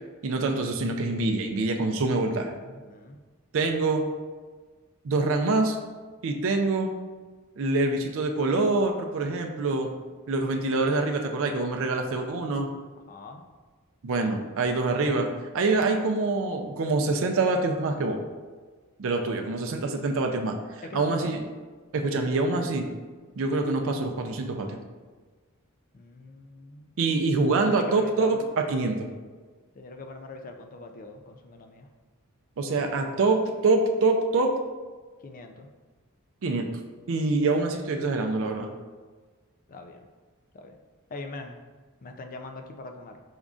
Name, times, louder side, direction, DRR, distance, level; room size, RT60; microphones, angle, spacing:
voice 1, 0.2-2.5 3.5-4.0 5.0-5.8 6.2-6.9 7.6-9.9 10.3-12.7 14.0-15.3 15.5-18.2 19.0-20.5 20.9-21.4 21.9-22.9 23.4-24.8 27.0-29.1 32.6-34.5 36.4-36.7 37.1-38.7, right 3 dB, 60° right, 3 dB, 0.4 m, -25 dB
voice 2, 2.6-3.2 13.1-13.4 19.4-19.5 20.8-21.3 25.9-26.9 27.5-28.3 29.7-31.9 32.6-33.1 35.2-35.7 39.7-40.1 40.5-40.8 41.1-41.6 42.0-43.2, left 3 dB, 40° left, 5 dB, 0.4 m, -42 dB
5.2 x 3.6 x 2.4 m, 1.4 s
head